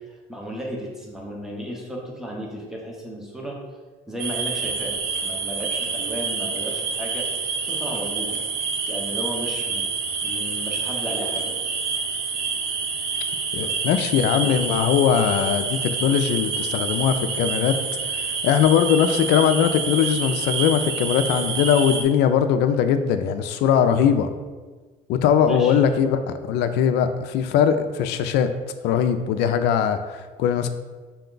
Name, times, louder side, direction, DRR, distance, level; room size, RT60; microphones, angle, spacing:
voice 1, 0.3-3.6 4.1-8.4 8.9-9.8 10.2-11.6 13.6-13.7 25.4-25.8, equal, 5° right, -2 dB, 0.9 m, -34 dB
sound 1, 4.2-22.0, right 5 dB, 90° right, 0.6 m, -27 dB
voice 2, 13.5-17.8 18.1-24.3 25.1-28.5 28.8-30.7, left 8 dB, 85° left, 9 dB, 0.4 m, -20 dB
5.9 x 2.2 x 3.8 m, 1.3 s
cardioid pair, 110°, 17 cm